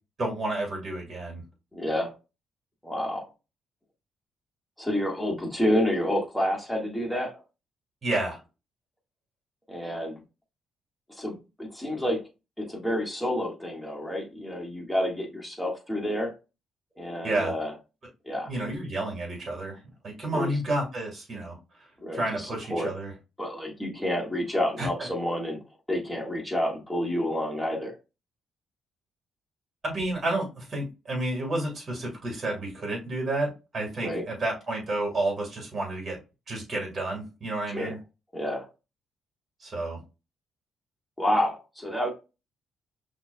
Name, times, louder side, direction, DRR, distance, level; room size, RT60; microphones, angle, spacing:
voice 1, 0.2-1.4 8.0-8.4 17.2-17.5 18.5-19.8 20.0-21.6 22.1-23.1 24.8-25.1 29.8-36.2 36.5-38.0 39.6-40.0, right 2 dB, 40° right, 0 dB, 2.2 m, -30 dB
voice 2, 1.7-2.1 2.8-3.3 4.8-7.4 9.7-10.2 11.2-12.2 12.6-16.3 17.0-17.7 18.2-18.5 20.3-20.5 22.0-22.9 23.4-25.6 25.9-27.9 34.0-34.2 37.7-37.9 38.3-38.7 41.2-42.1, equal, ahead, -2 dB, 1.7 m, -29 dB
5.9 x 2.8 x 2.3 m, 0.29 s
cardioid pair, 90°, 0 cm